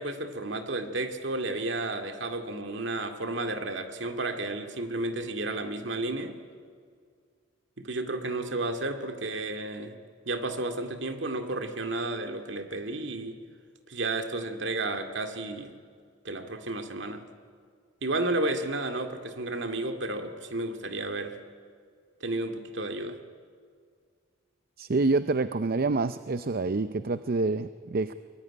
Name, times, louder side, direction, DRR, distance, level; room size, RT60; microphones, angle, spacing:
voice 1, 0.0-6.4 7.8-9.9 10.3-13.4 13.9-15.7 16.2-17.2 18.0-21.4 22.2-23.2, right 2 dB, 65° right, 6 dB, 2.2 m, -32 dB
voice 2, 24.8-28.1, right 3 dB, 50° right, 12 dB, 0.6 m, -27 dB
23.5 x 22.0 x 9.9 m, 2.1 s
head